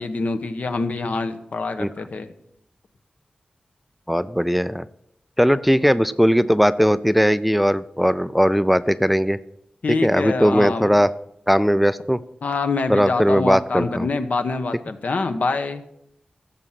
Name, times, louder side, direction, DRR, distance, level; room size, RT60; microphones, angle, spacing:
voice 1, 0.0-2.3 9.8-10.9 12.4-15.8, left 3 dB, 70° left, 9 dB, 1.1 m, -25 dB
voice 2, 4.1-4.8 5.4-9.4 10.0-11.1 11.5-12.2 12.9-14.1, equal, ahead, 15 dB, 0.4 m, -18 dB
16.0 x 7.3 x 5.8 m, 0.76 s
wide cardioid pair, 105°, 3 cm